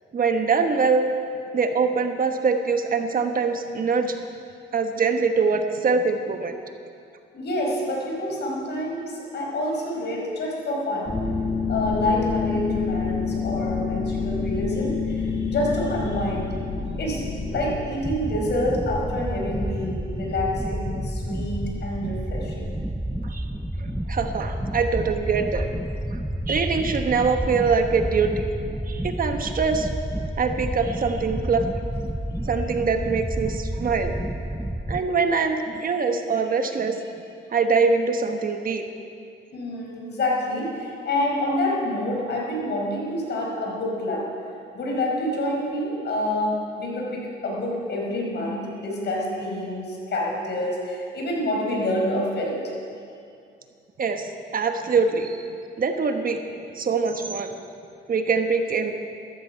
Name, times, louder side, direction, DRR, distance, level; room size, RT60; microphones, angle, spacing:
voice 1, 0.1-1.1 1.5-4.2 4.7-6.6 23.2-23.4 23.8-25.7 26.5-28.3 28.9-29.9 30.4-31.7 32.5-34.1 34.9-37.0 37.5-38.8 54.0-55.4 55.8-56.4 56.7-57.5 58.1-58.9, right 5 dB, 45° right, 6 dB, 1.2 m, -23 dB
voice 2, 7.3-11.1 11.7-16.5 17.0-17.2 17.5-22.7 39.5-44.3 44.7-52.6, left 1 dB, 60° left, -2 dB, 4.7 m, -27 dB
sound 1, 11.0-17.7, left 5 dB, 25° left, 3.1 m, -27 dB
sound 2, 18.0-35.0, right 1 dB, ahead, 0.6 m, -30 dB
14.0 x 14.0 x 5.7 m, 2.4 s
cardioid pair, 90°, 20 cm